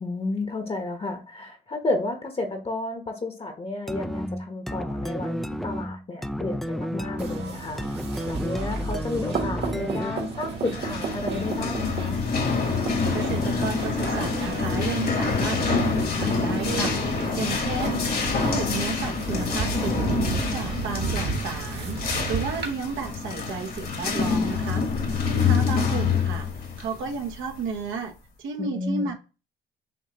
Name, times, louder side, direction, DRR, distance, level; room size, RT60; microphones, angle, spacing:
voice 1, 0.0-12.2 28.6-29.1, left 2 dB, 30° left, 0.9 m, -32 dB
sound 1, 3.9-10.4, equal, ahead, 0.3 m, -31 dB
sound 2, 7.2-22.7, right 4 dB, 55° right, 1.4 m, -33 dB
sound 3, 10.5-27.9, left 5 dB, 50° left, 1.3 m, -27 dB
voice 2, 13.1-16.9 17.3-18.1 18.4-20.2 20.5-22.0 22.3-24.8 25.2-26.5 26.8-28.1 28.4-29.1, right 5 dB, 80° right, 1.0 m, -32 dB
5.8 x 2.9 x 2.9 m
cardioid pair, 90°, 20 cm